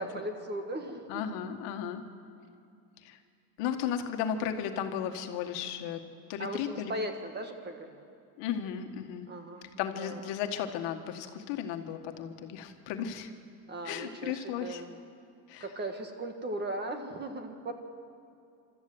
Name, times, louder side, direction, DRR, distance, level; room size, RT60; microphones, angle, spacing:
voice 1, 0.0-1.4 6.4-8.0 9.3-9.7 10.0-10.2 13.7-15.0 15.6-17.7, right 1 dB, 20° right, 6 dB, 1.6 m, -38 dB
voice 2, 1.1-2.0 3.0-3.2 3.6-6.0 6.3-6.9 8.4-9.3 9.8-13.3 13.8-14.8 15.5-15.7, left 9 dB, 60° left, 6 dB, 1.7 m, -35 dB
26.0 x 13.5 x 7.9 m, 2.5 s
supercardioid pair, 130°, 48 cm